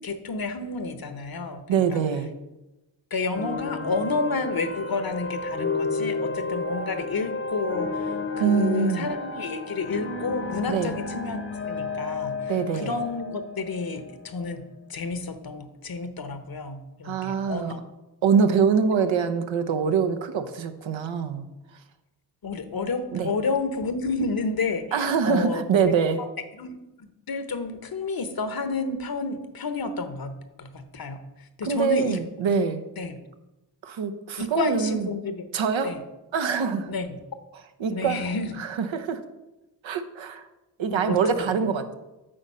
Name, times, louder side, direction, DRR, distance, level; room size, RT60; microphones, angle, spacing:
voice 1, 0.0-2.0 3.1-7.9 8.4-11.4 11.7-12.4 12.7-14.6 14.9-17.8 22.4-25.9 26.6-26.8 27.3-30.3 30.6-31.2 31.6-32.2 33.0-33.2 34.4-35.4 35.8-36.0 36.9-37.2 37.9-38.5 40.9-41.5, left 3 dB, 50° left, 9 dB, 1.0 m, -30 dB
voice 2, 1.7-2.3 8.4-9.1 10.7-11.0 12.5-13.0 17.0-17.7 18.2-21.5 23.1-23.3 24.9-26.2 31.6-32.8 33.8-35.1 35.5-35.9 36.3-36.9 37.5-38.3 38.6-39.2 39.8-40.5 40.8-41.9, right 6 dB, 70° right, 8 dB, 0.9 m, -24 dB
sound 1, 3.3-14.6, left 3 dB, 30° left, 0.9 m, -32 dB
8.8 x 4.1 x 5.5 m, 1.0 s
supercardioid pair, 40°, 47 cm